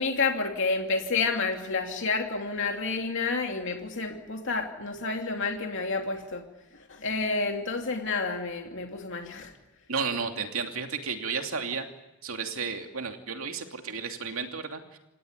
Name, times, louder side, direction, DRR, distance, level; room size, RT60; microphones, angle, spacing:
voice 1, 0.0-6.4 6.9-9.5, left 4 dB, 55° left, 3 dB, 2.7 m, -29 dB
voice 2, 9.9-11.9 12.2-15.0, right 5 dB, 65° right, 4 dB, 2.9 m, -33 dB
28.0 x 17.5 x 9.7 m, 0.96 s
head